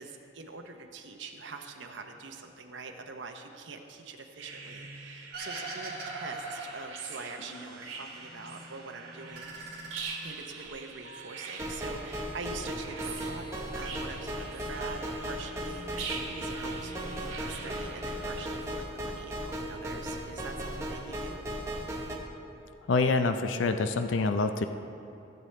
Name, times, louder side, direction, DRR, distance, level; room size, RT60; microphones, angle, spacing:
voice 1, 0.0-9.5 10.2-21.4, right 4 dB, 70° right, 4 dB, 0.8 m, -44 dB
sound 1, 4.4-18.4, right 4 dB, 85° right, 1.5 m, -43 dB
sound 2, 5.3-7.7 8.0-8.8 9.2-10.7, right 3 dB, 50° right, 1.9 m, -42 dB
sound 3, 11.6-22.1, equal, 15° right, 1.0 m, -36 dB
voice 2, 22.9-24.7, left 3 dB, 75° left, 8 dB, 0.5 m, -26 dB
16.0 x 7.9 x 3.3 m, 3.0 s
head